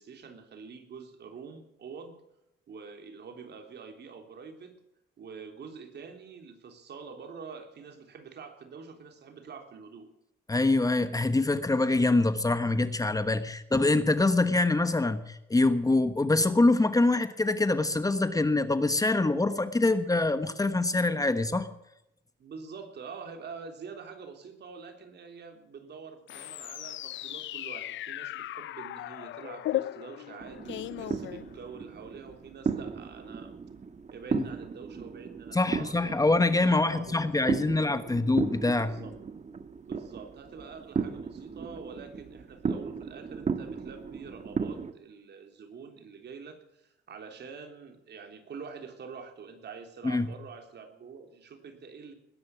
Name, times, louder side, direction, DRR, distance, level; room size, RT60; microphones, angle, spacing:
voice 1, 0.0-2.2 2.7-4.8 5.2-10.1 22.4-33.5 34.1-38.1 38.7-39.1 39.8-52.1, right 5 dB, 60° right, 5 dB, 3.4 m, -46 dB
voice 2, 10.5-21.7 34.3-34.4 35.5-39.0 50.0-50.3, left 2 dB, 20° left, 11 dB, 1.2 m, -25 dB
sound 1, 26.3-31.9, left 15 dB, 70° left, 0.5 m, -37 dB
sound 2, 30.4-44.9, right 5 dB, 35° right, 1.3 m, -36 dB
20.5 x 10.5 x 6.1 m, 0.86 s
cardioid pair, 90°, 20 cm